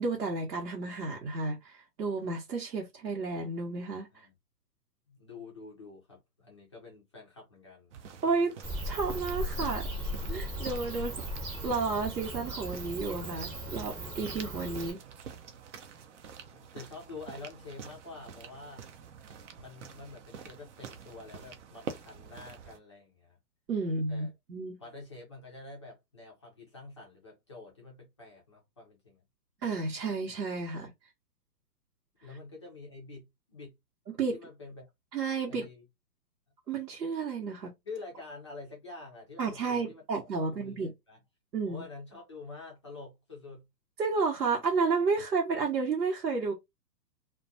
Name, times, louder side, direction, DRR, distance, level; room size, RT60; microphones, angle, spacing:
voice 1, 0.0-4.3 8.2-8.6 8.8-9.9 10.3-11.2 11.6-15.0 23.7-24.8 29.6-30.9 34.2-34.4 35.1-35.7 36.7-37.7 39.4-40.9 41.5-41.8 44.0-46.5, right 4 dB, 90° right, 0.9 m, -31 dB
voice 2, 5.1-7.9 16.5-18.9 19.5-23.4 23.8-24.3 24.8-29.2 30.7-30.8 32.2-33.8 34.3-34.9 35.5-35.8 37.8-40.0 40.4-41.2 41.6-43.7, left 3 dB, 20° left, 0.4 m, -47 dB
sound 1, 7.9-22.8, right 6 dB, 50° right, 0.5 m, -47 dB
Bird / Cricket, 8.6-14.9, equal, 20° right, 0.9 m, -37 dB
2.3 x 2.2 x 2.6 m
hypercardioid pair, 135°, 49 cm